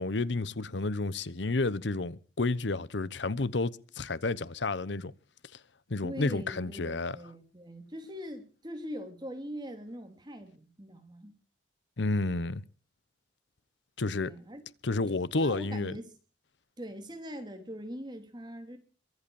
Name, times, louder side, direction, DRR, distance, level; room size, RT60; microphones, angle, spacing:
voice 1, 0.0-5.1 5.9-7.2 12.0-12.6 14.0-14.3 14.8-16.0, left 3 dB, 80° left, 0.9 m, -31 dB
voice 2, 6.0-11.3 14.2-14.6 15.3-16.1 16.8-18.8, equal, 25° right, 3.1 m, -42 dB
23.0 x 8.0 x 7.1 m
head